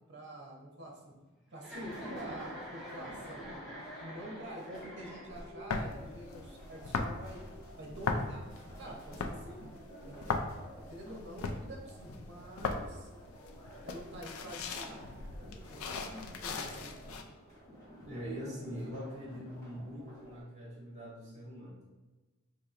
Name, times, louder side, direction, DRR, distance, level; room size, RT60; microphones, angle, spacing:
voice 1, 0.1-1.2 1.5-3.5 4.0-7.4 7.8-8.4 8.8-9.7 10.0-10.3 10.7-13.1 13.8-15.0 15.6-17.0, right 1 dB, 55° right, 0 dB, 0.7 m, -47 dB
Chuckle chortle, 1.6-5.6, equal, ahead, 0.9 m, -46 dB
sound 1, 1.7-20.4, equal, 20° left, 1.2 m, -52 dB
sound 2, 5.7-17.2, left 4 dB, 80° left, 0.4 m, -38 dB
voice 2, 18.0-21.8, equal, 35° right, -6 dB, 1.3 m, -43 dB
4.0 x 2.9 x 2.4 m, 1.2 s
head